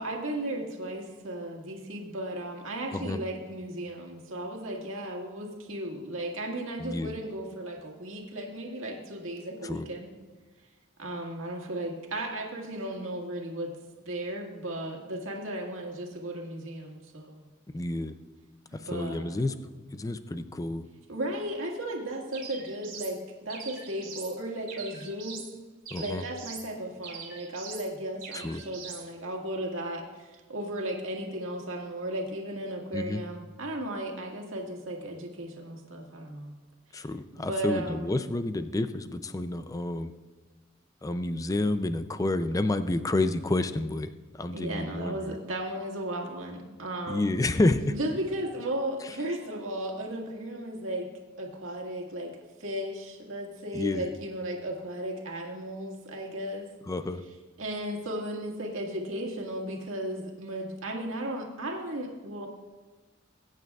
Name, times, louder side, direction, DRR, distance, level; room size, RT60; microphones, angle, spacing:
voice 1, 0.0-10.1 11.0-13.7 14.1-17.4 18.7-19.4 21.1-25.5 26.0-36.5 37.3-38.1 44.5-47.4 47.9-51.1 51.4-56.7 57.6-62.5, right 1 dB, 90° right, 0 dB, 1.8 m, -35 dB
voice 2, 6.8-7.2 9.6-9.9 17.7-18.2 18.7-19.6 19.9-20.9 25.9-26.3 28.3-28.6 32.9-33.2 36.9-40.1 41.0-45.4 47.1-47.9 49.0-49.2 53.7-54.1 56.9-57.2, left 2 dB, 15° left, 10 dB, 0.4 m, -29 dB
sound 1, 22.3-23.2 23.5-24.3 24.7-25.5 25.9-26.7 27.0-27.9 28.2-29.0, right 6 dB, 45° right, 2.5 m, -43 dB
21.0 x 9.1 x 2.4 m, 1.3 s
head